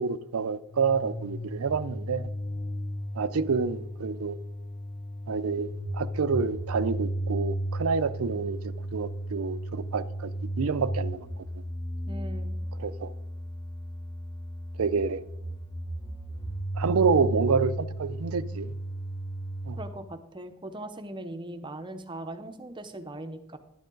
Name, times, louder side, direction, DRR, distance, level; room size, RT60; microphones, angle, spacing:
voice 1, 0.0-2.3 3.1-4.4 5.3-8.6 8.9-11.3 12.8-13.1 14.8-15.2 16.8-18.7 19.7-19.8, right 5 dB, 70° right, 0.5 m, -28 dB
sound 1, 0.7-19.9, right 1 dB, 20° left, 1.2 m, -34 dB
voice 2, 12.1-12.6 19.8-23.6, right 1 dB, 20° right, 0.7 m, -40 dB
10.5 x 9.2 x 3.8 m
head